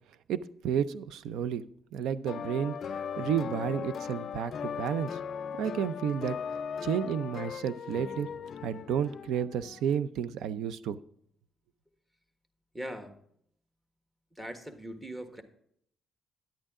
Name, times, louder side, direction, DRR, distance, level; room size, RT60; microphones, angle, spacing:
voice 1, 0.3-1.6 1.9-5.2 5.6-6.4 6.8-8.3 8.6-11.0, right 8 dB, 85° right, 0.5 m, -31 dB
sound 1, 2.3-9.8, left 7 dB, 55° left, 0.4 m, -38 dB
voice 2, 12.7-13.2 14.3-15.4, right 1 dB, 10° right, 1.5 m, -40 dB
10.0 x 8.8 x 3.7 m
cardioid pair, 100°, 0 cm